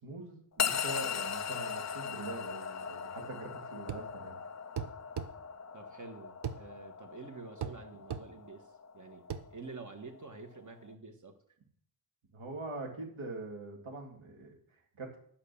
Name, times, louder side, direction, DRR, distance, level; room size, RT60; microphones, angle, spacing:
voice 1, 0.0-4.3 12.3-15.2, right 2 dB, 90° right, 1 dB, 2.7 m, -43 dB
sound 1, 0.6-10.9, left 7 dB, 35° left, 0.5 m, -39 dB
sound 2, 3.9-4.1 4.8-5.3 6.4-6.6 7.6-7.8 8.1-8.3 9.3-9.5, right 8 dB, 60° right, 0.7 m, -37 dB
voice 2, 5.7-11.4, right 4 dB, 40° right, 5 dB, 1.4 m, -48 dB
11.0 x 5.8 x 7.0 m, 0.63 s
wide cardioid pair, 155°, 47 cm